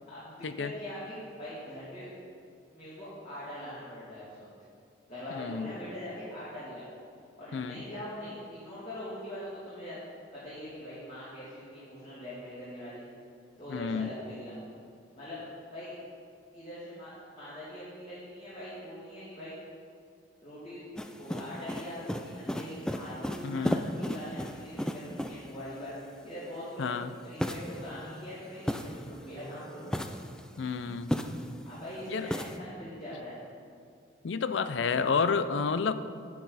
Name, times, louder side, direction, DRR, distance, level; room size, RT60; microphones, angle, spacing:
voice 1, 0.1-2.1 2.7-4.5 5.1-6.9 7.4-10.0 10.3-13.0 13.6-14.6 15.1-15.4 15.7-16.0 16.5-19.5 20.4-20.8 21.1-29.9 31.6-33.4, left 1 dB, 35° left, -11 dB, 2.6 m, -42 dB
voice 2, 5.4-5.7 7.5-7.8 13.7-14.1 23.4-23.8 26.8-27.1 30.6-31.1 32.1-32.3 34.2-35.9, left 5 dB, 80° left, 12 dB, 0.5 m, -30 dB
sound 1, 21.0-25.6 27.4-29.3 29.8-31.7 32.3-32.6, equal, 5° left, 0.3 m, -35 dB
10.0 x 8.6 x 4.1 m, 2.4 s
head